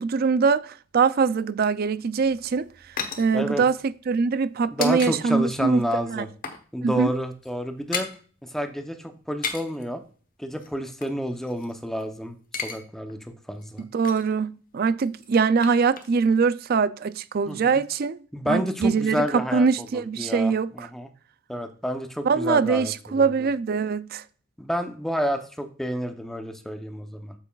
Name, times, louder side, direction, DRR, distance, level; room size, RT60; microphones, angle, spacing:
voice 1, 0.0-2.7 3.2-3.7 4.1-5.8 6.1-6.2 6.8-7.1 13.8-18.2 18.5-20.9 22.3-24.2, right 5 dB, 50° right, 0.4 m, -23 dB
sound 1, 2.2-5.1 5.4-5.6 6.0-6.7 6.9-7.1 7.3-8.2 9.2-9.8 10.6-12.0 12.3-12.8 13.1-13.2 13.6-14.4 15.1-16.4 16.6-16.7, left 6 dB, 45° left, 1.1 m, -35 dB
voice 2, 4.7-6.3 6.7-8.1 8.4-10.0 10.4-12.4 12.6-13.2 13.5-13.9 17.5-17.8 18.3-21.1 21.5-23.3 24.6-27.3, equal, ahead, 0.8 m, -29 dB
8.5 x 7.6 x 2.4 m
head